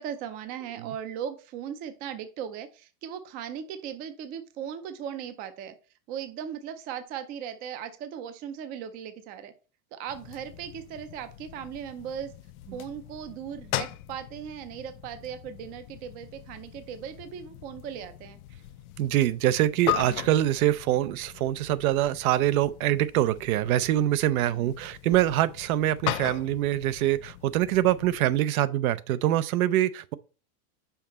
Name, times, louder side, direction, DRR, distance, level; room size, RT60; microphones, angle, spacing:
voice 1, 0.0-5.8 6.1-9.5 9.9-12.3 12.7-18.4 24.4-24.7, right 8 dB, 20° right, 0.4 m, -38 dB
sound 1, 10.1-28.4, left 16 dB, 75° left, 0.6 m, -39 dB
voice 2, 19.0-30.1, right 13 dB, 75° right, 0.6 m, -24 dB
5.8 x 4.8 x 4.1 m
supercardioid pair, 155°, 44 cm